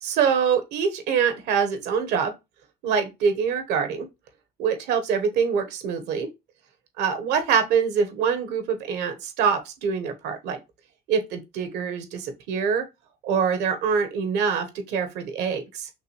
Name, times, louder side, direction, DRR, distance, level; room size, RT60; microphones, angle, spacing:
voice 1, 0.0-2.3 2.8-4.1 4.6-6.3 7.0-10.6 11.1-12.8 13.2-15.9, right 6 dB, 85° right, 1.0 m, -24 dB
5.9 x 2.5 x 3.0 m
cardioid pair, 110°, 17 cm